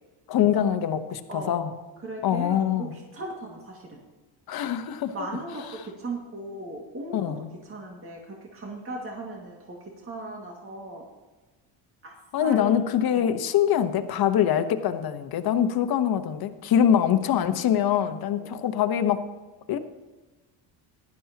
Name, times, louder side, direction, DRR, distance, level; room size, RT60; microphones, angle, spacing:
voice 1, 0.3-1.7 2.2-2.9 4.5-5.1 7.1-7.5 12.3-19.2 19.7-19.8, left 9 dB, 55° left, 9 dB, 1.1 m, -24 dB
voice 2, 1.3-1.6 2.0-4.0 5.1-7.4 7.6-11.1 12.0-12.8 13.1-13.3 18.3-18.5, right 2 dB, 30° right, 0 dB, 2.1 m, -37 dB
15.5 x 12.0 x 2.9 m, 1.2 s
cardioid pair, 90°, 43 cm